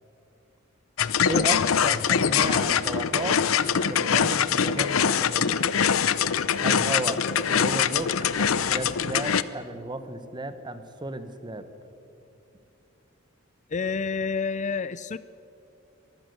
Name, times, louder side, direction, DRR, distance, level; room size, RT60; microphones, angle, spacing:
sound 1, 1.0-9.4, left 7 dB, 90° left, 0.7 m, -23 dB
voice 1, 1.3-5.6 6.6-7.2 7.5-11.6, right 2 dB, 20° right, 10 dB, 1.2 m, -34 dB
voice 2, 13.7-15.2, left 5 dB, 35° left, 16 dB, 0.4 m, -28 dB
23.0 x 15.0 x 7.9 m, 2.7 s
head